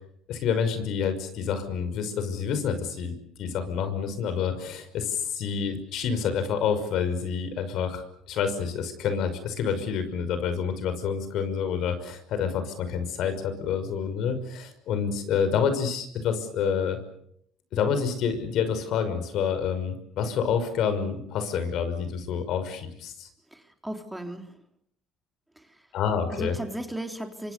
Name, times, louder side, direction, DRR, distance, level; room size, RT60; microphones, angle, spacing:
voice 1, 0.3-17.0 17.7-23.3 25.9-26.6, left 7 dB, 65° left, 10 dB, 5.8 m, -28 dB
voice 2, 23.5-24.6 26.3-27.5, right 1 dB, 5° right, 5 dB, 3.6 m, -35 dB
27.0 x 25.0 x 6.9 m, 0.72 s
supercardioid pair, 95°, 0 cm